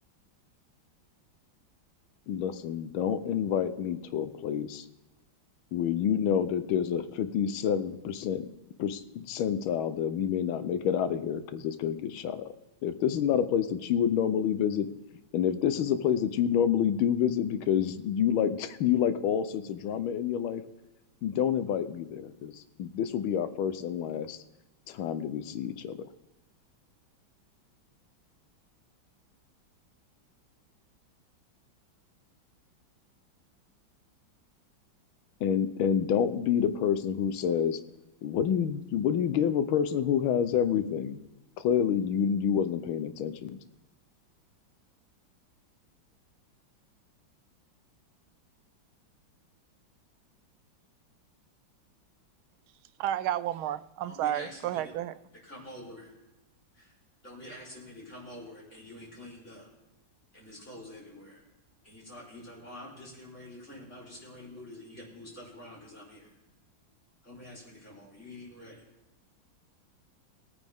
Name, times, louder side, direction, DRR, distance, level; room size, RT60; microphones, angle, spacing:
voice 1, 2.3-4.8 5.7-8.5 8.8-12.5 12.8-14.9 15.3-20.6 21.2-24.4 24.9-26.1 35.4-37.8 38.2-41.2 41.6-43.6, left 8 dB, 90° left, 12 dB, 1.6 m, -28 dB
voice 2, 53.0-55.2, right 12 dB, 90° right, 14 dB, 1.4 m, -31 dB
voice 3, 54.0-54.9 55.4-56.1 56.7-56.9 57.2-59.7 60.3-61.4 61.8-66.3 67.2-68.8, left 1 dB, 35° left, -4 dB, 4.5 m, -47 dB
19.0 x 9.3 x 3.6 m, 1.0 s
omnidirectional pair, 2.2 m